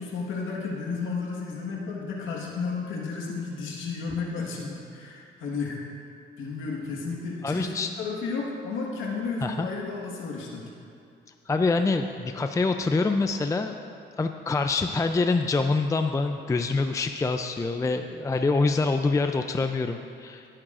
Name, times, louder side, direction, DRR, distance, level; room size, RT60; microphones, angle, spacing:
voice 1, 0.0-5.8 6.4-10.7, left 4 dB, 80° left, -2 dB, 1.5 m, -33 dB
voice 2, 7.4-7.9 9.4-9.7 11.5-13.7 14.2-20.5, left 3 dB, 15° left, 7 dB, 0.4 m, -25 dB
17.5 x 8.8 x 2.5 m, 2.5 s
cardioid pair, 90°, 20 cm